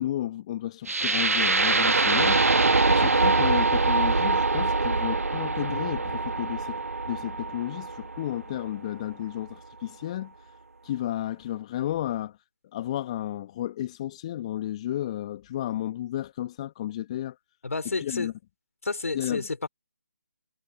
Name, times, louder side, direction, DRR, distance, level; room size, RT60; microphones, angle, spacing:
voice 1, 0.0-2.4 2.9-10.5 10.8-12.4 12.7-17.4 17.9-18.3 19.1-19.5, left 12 dB, 25° left, 1.5 m, -32 dB
sound 1, 0.9-8.9, right 3 dB, 65° right, 1.7 m, -24 dB
voice 2, 17.6-18.3 18.8-19.7, left 3 dB, 60° left, 3.5 m, -30 dB
figure-of-eight pair, 150°, 9 cm